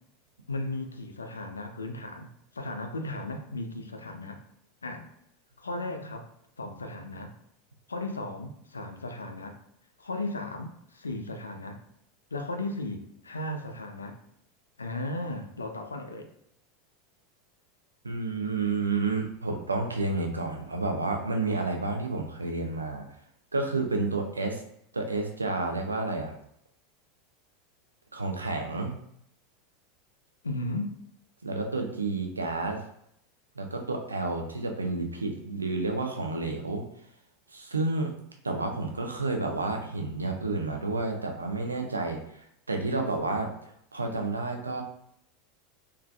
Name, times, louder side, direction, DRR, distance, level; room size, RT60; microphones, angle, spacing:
voice 1, 0.5-4.4 4.8-5.1 5.6-6.3 6.6-7.3 7.9-9.6 10.0-11.8 12.3-14.2 14.8-16.3 30.4-31.0, left 2 dB, 80° left, 5 dB, 0.4 m, -36 dB
voice 2, 18.0-23.1 23.5-24.6 24.9-26.4 28.1-28.9 31.4-32.8 33.6-36.8 37.5-38.1 38.4-43.5 43.9-44.8, right 3 dB, 85° right, 3 dB, 0.5 m, -30 dB
3.6 x 3.2 x 2.3 m, 0.72 s
figure-of-eight pair, 85°, 0 cm